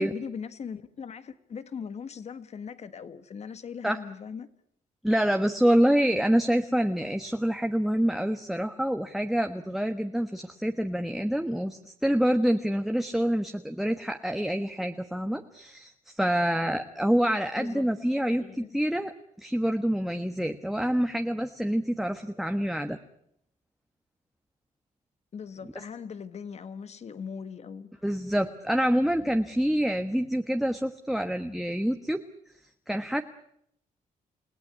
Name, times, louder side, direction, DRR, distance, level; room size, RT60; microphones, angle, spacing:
voice 1, 0.0-4.5 17.6-17.9 18.3-18.7 25.3-27.9, left 6 dB, 50° left, 1.6 m, -39 dB
voice 2, 5.0-23.0 28.0-32.2 32.9-33.2, equal, ahead, 1.2 m, -26 dB
29.0 x 18.0 x 9.9 m
cardioid pair, 120°, 14 cm